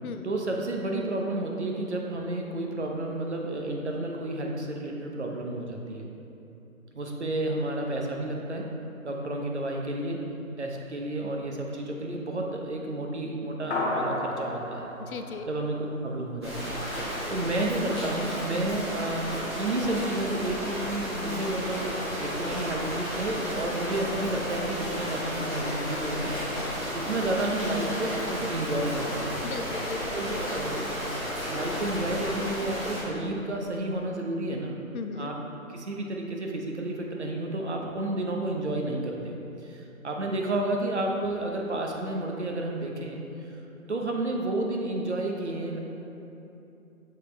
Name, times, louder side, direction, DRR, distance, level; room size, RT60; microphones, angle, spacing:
voice 1, 0.2-6.1 6.9-8.7 9.0-10.2 10.6-14.9 15.5-29.5 30.1-30.8 31.5-34.8 35.2-35.4 35.7-43.5 43.9-45.8, right 1 dB, 55° right, 1 dB, 0.8 m, -31 dB
sound 1, 13.7-16.4, left 1 dB, 50° left, 1.1 m, -33 dB
voice 2, 15.0-15.4 29.4-30.9 34.9-35.3, left 5 dB, 80° left, 7 dB, 0.6 m, -38 dB
sound 2, 16.4-33.0, equal, 20° right, 1.3 m, -33 dB
6.6 x 5.1 x 3.2 m, 2.9 s
hypercardioid pair, 180°, 42 cm